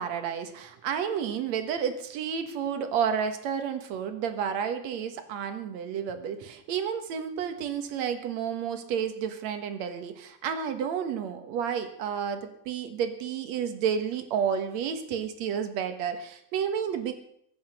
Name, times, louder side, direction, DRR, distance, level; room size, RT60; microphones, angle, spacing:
voice 1, 0.0-17.1, right 7 dB, 70° right, 8 dB, 2.5 m, -31 dB
22.0 x 8.1 x 6.5 m, 0.72 s
omnidirectional pair, 3.4 m